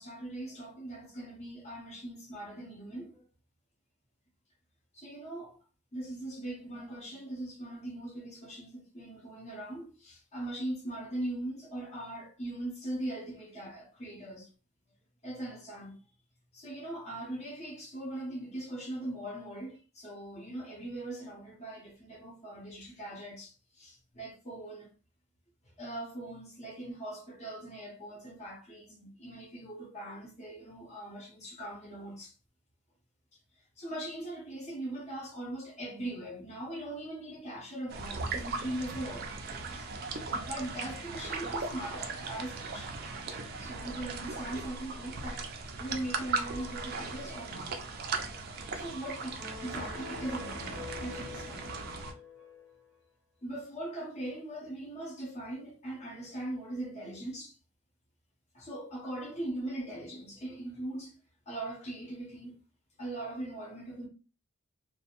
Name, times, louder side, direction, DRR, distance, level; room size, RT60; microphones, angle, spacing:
voice 1, 0.0-3.2 4.9-5.6 5.9-14.5 15.2-16.0 16.5-24.9 25.8-32.3 33.8-39.4 39.7-39.9 40.3-43.0 43.6-45.4 45.8-47.8 48.7-51.7 53.4-57.6 58.5-61.2 61.5-62.5 63.0-64.1, right 1 dB, 30° left, 0.7 m, -40 dB
sound 1, 37.9-52.1, right 3 dB, 45° right, 0.3 m, -38 dB
sound 2, 49.4-52.9, left 5 dB, 5° left, 0.9 m, -46 dB
2.4 x 2.1 x 2.8 m
head